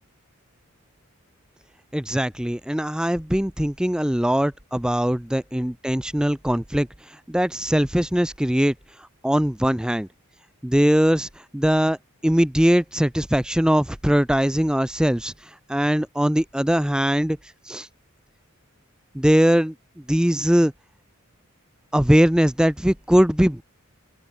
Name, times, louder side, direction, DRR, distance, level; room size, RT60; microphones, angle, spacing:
voice 1, 1.9-8.7 9.2-10.1 10.6-12.0 12.2-17.4 17.7-17.9 19.1-19.7 20.1-20.7 21.9-23.6, equal, 5° right, 0.5 m, -21 dB
open air
head